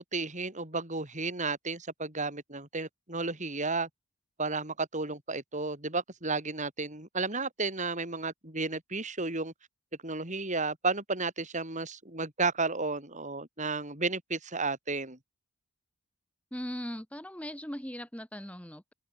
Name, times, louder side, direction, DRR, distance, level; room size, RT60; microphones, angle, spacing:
voice 1, 0.0-3.9 4.4-9.5 10.0-15.2, right 3 dB, 35° right, 5.9 m, -33 dB
voice 2, 16.5-18.9, equal, 5° left, 4.2 m, -39 dB
open air
head